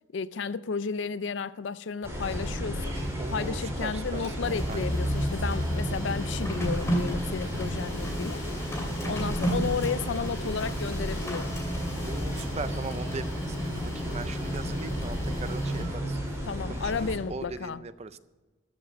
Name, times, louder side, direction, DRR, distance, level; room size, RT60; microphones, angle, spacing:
voice 1, 0.1-2.9 3.3-8.4 9.0-11.5 16.4-17.8, left 5 dB, 65° left, 0.4 m, -33 dB
sound 1, 2.0-17.2, equal, 15° right, 3.7 m, -33 dB
voice 2, 3.2-4.8 9.0-9.4 12.1-16.2 16.7-18.2, right 3 dB, 30° right, 0.4 m, -40 dB
Printer, 4.1-16.1, right 1 dB, 15° left, 2.4 m, -34 dB
13.5 x 7.4 x 7.2 m
head